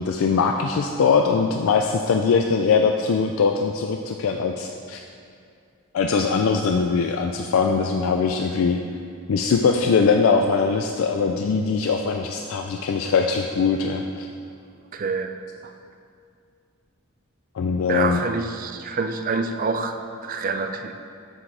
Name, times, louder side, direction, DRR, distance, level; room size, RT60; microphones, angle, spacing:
voice 1, 0.0-5.0 5.9-8.8 9.3-14.3 17.6-18.2, left 5 dB, 75° left, 3 dB, 0.3 m, -21 dB
voice 2, 14.9-15.3 15.6-15.7 17.9-20.0 20.2-20.9, right 4 dB, 40° right, 6 dB, 0.4 m, -26 dB
7.6 x 6.1 x 3.3 m, 2.3 s
head